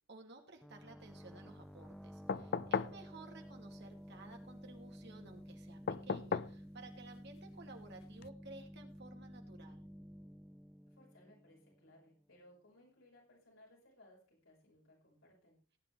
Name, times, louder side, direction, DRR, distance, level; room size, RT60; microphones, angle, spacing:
voice 1, 0.1-9.9, right 3 dB, 60° right, 3 dB, 2.6 m, -55 dB
sound 1, 0.6-12.1, equal, ahead, 0.6 m, -53 dB
sound 2, 2.3-3.0 5.9-6.6 8.2-8.3, left 5 dB, 55° left, 0.5 m, -36 dB
voice 2, 2.7-3.0 10.9-15.6, left 1 dB, 80° left, -3 dB, 5.8 m, -64 dB
18.0 x 8.7 x 3.4 m, 0.38 s
head